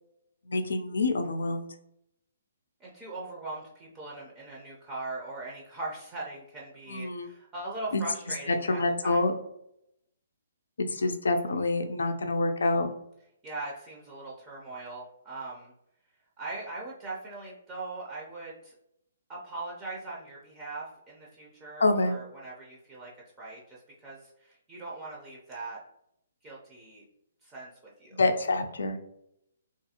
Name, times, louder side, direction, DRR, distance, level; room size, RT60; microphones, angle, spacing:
voice 1, 0.5-1.7 6.9-7.3 7.9-8.0 8.7-9.3 10.9-12.9 21.8-22.2 28.2-29.0, left 2 dB, 90° left, 6 dB, 0.4 m, -26 dB
voice 2, 2.8-9.3 13.4-15.7 16.4-18.7 19.3-23.1 23.4-25.8 26.4-27.0 27.4-28.2, right 2 dB, 15° right, -5 dB, 0.4 m, -40 dB
2.6 x 2.4 x 2.8 m, 0.78 s
hypercardioid pair, 160°, 0 cm